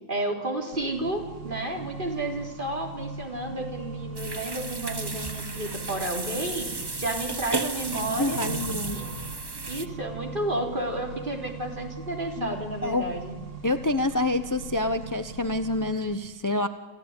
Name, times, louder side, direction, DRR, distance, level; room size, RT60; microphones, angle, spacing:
voice 1, 0.1-8.4 8.9-9.2 9.7-13.4, right 1 dB, 40° right, 2 dB, 3.9 m, -31 dB
Accelerating revving vroom, 0.7-16.1, right 4 dB, 75° right, 2.5 m, -40 dB
sound 1, 4.2-9.9, right 3 dB, 20° right, 0.9 m, -34 dB
voice 2, 8.0-9.0 12.4-12.6 12.8-13.1 13.6-16.7, left 2 dB, 15° left, 10 dB, 0.8 m, -27 dB
27.5 x 16.0 x 9.8 m, 1.4 s
omnidirectional pair, 1.3 m